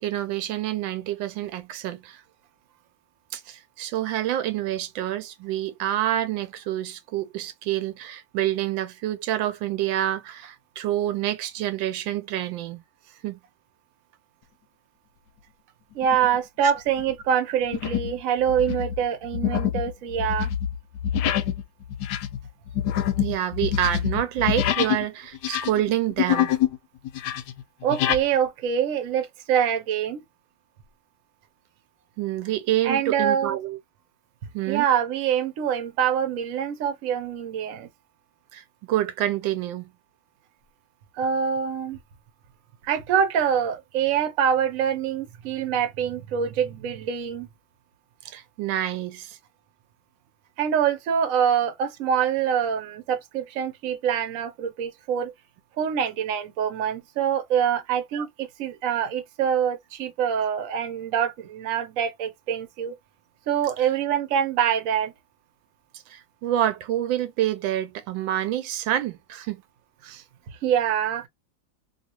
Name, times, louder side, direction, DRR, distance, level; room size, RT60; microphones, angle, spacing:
voice 1, 0.0-2.2 3.3-12.8 13.2-13.4 23.2-26.5 32.2-33.8 34.5-34.9 38.5-39.9 48.2-49.4 58.1-58.3 66.1-69.6 70.0-70.2, right 12 dB, 85° right, 1.3 m, -27 dB
voice 2, 15.9-20.5 27.8-30.2 32.8-33.6 34.7-37.9 41.2-42.0 42.8-47.5 50.6-55.3 55.8-62.9 63.5-65.1 70.6-71.3, right 8 dB, 60° right, 0.9 m, -25 dB
sound 1, 16.0-16.4 16.9-17.1 17.7-18.2 18.5-25.0 25.3-26.8 27.0-28.2, left 10 dB, 75° left, 1.0 m, -26 dB
2.8 x 2.7 x 2.9 m
omnidirectional pair, 2.0 m